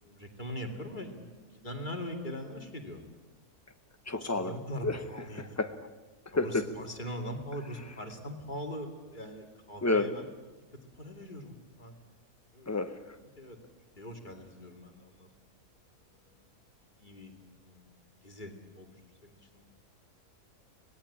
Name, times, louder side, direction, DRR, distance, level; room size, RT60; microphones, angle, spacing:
voice 1, 0.0-3.0 4.1-5.6 6.3-10.3 10.7-11.9 12.5-12.7 13.1-13.6 14.0-15.3 15.9-16.5 17.0-17.3 17.6-17.9 18.2-19.6, equal, 30° left, 2 dB, 2.8 m, -42 dB
voice 2, 4.1-4.6 4.8-5.0 5.3-5.8 6.4-6.7 9.8-10.1 12.7-13.2, left 3 dB, 15° left, 8 dB, 0.9 m, -30 dB
25.0 x 19.0 x 8.7 m, 1.2 s
omnidirectional pair, 1.6 m